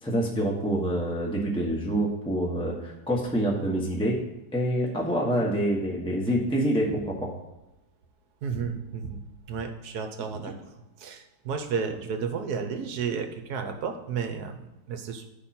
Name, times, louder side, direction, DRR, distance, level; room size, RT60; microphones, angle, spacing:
voice 1, 0.0-4.2 4.5-7.3, right 1 dB, 5° left, -3 dB, 1.0 m, -26 dB
voice 2, 8.4-9.2 9.5-10.5 11.0-15.3, right 6 dB, 65° right, 6 dB, 1.3 m, -32 dB
12.0 x 5.3 x 4.3 m, 0.97 s
omnidirectional pair, 1.9 m